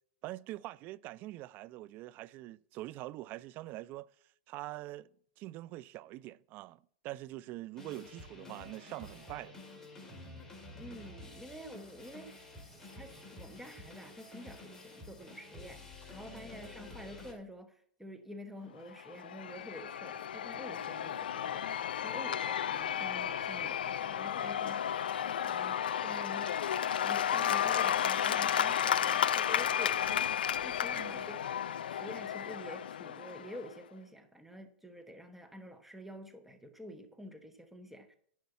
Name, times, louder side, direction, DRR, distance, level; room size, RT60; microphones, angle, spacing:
voice 1, 0.2-4.1 4.5-5.1 5.4-9.6 16.3-16.5 30.9-31.3, right 17 dB, 40° right, 0.4 m, -44 dB
sound 1, 7.8-17.3, left 2 dB, 10° left, 2.4 m, -50 dB
voice 2, 10.7-30.3 30.6-31.6 31.9-38.2, equal, 5° right, 1.1 m, -49 dB
Cheering / Applause / Crowd, 19.0-33.7, left 9 dB, 85° left, 0.4 m, -33 dB
10.5 x 4.6 x 8.1 m
hypercardioid pair, 130°, 5 cm